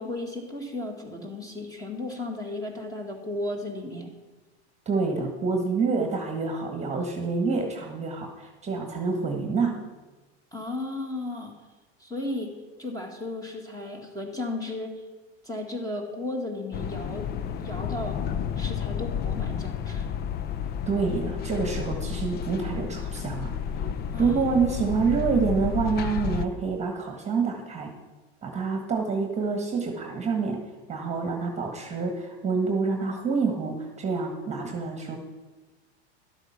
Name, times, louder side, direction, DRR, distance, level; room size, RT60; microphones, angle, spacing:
voice 1, 0.0-4.1 10.5-11.5 12.0-12.5 12.8-15.0 15.5-17.3 17.6-18.2 18.6-20.1 24.1-24.5, left 2 dB, 10° left, 3 dB, 2.0 m, -34 dB
voice 2, 4.8-9.8 20.8-23.5 24.1-28.0 28.4-30.6 30.9-35.2, right 4 dB, 20° right, 3 dB, 1.6 m, -27 dB
sound 1, 16.7-26.5, left 8 dB, 30° left, 0.5 m, -31 dB
12.0 x 8.0 x 5.9 m, 1.2 s
supercardioid pair, 120°, 34 cm